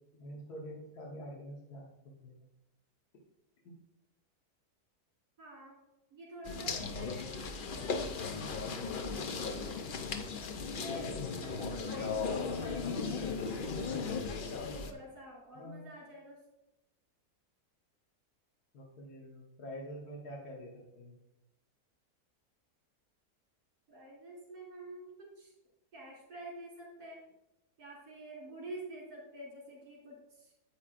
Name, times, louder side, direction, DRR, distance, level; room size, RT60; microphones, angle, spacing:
voice 1, 0.1-2.3 15.5-15.9 18.7-21.1, equal, 75° left, -3 dB, 1.8 m, -46 dB
voice 2, 5.4-5.7 6.1-9.7 10.8-13.3 14.5-16.4 23.9-25.5 25.9-27.2 27.8-30.5, right 1 dB, 85° right, -5 dB, 3.0 m, -48 dB
sound 1, 6.5-14.9, left 4 dB, 55° left, 0.6 m, -37 dB
9.9 x 8.1 x 2.5 m, 0.89 s
omnidirectional pair, 1.7 m